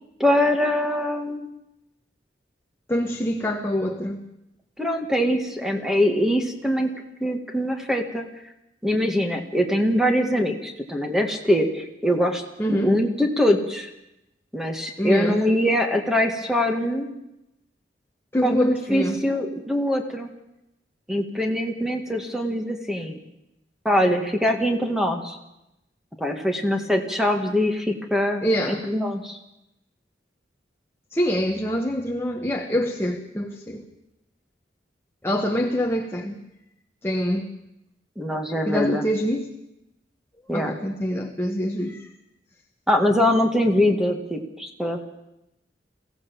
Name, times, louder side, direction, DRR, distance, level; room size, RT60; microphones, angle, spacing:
voice 1, 0.2-1.4 4.8-6.9 7.2-8.3 8.8-12.4 12.7-13.9 14.5-17.1 18.4-20.3 21.1-23.2 23.9-25.4 26.2-29.4 38.2-39.1 40.5-40.8 42.9-45.0, equal, 5° right, 4 dB, 1.9 m, -23 dB
voice 2, 2.9-4.2 12.6-13.0 15.0-15.4 18.3-19.2 28.4-28.8 31.1-33.9 35.2-36.4 37.0-37.5 38.7-39.5 40.5-42.1, equal, 15° left, 1 dB, 1.3 m, -25 dB
23.0 x 16.0 x 7.1 m, 0.88 s
head